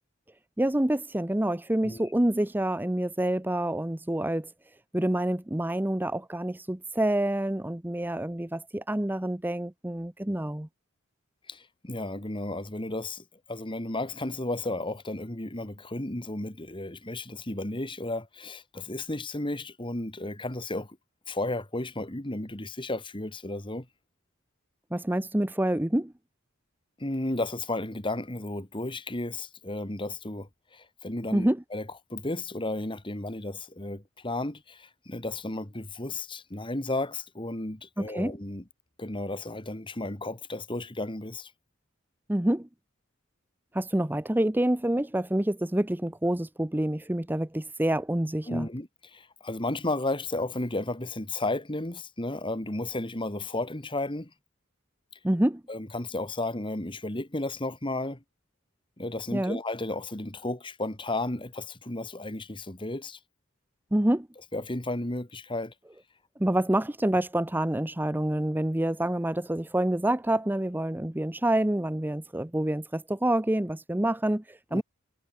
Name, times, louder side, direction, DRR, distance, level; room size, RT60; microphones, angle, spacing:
voice 1, 0.6-4.5 4.9-10.7 24.9-26.1 31.3-31.6 38.0-38.3 42.3-42.7 43.7-48.7 55.2-55.6 59.3-59.6 63.9-64.3 66.4-74.8, right 1 dB, 10° right, 0.7 m, -27 dB
voice 2, 11.5-21.0 21.3-23.9 27.0-31.9 32.1-38.6 39.0-41.5 48.5-54.3 55.7-58.2 59.0-63.2 64.5-65.7 74.7-74.8, left 2 dB, 25° left, 2.1 m, -33 dB
head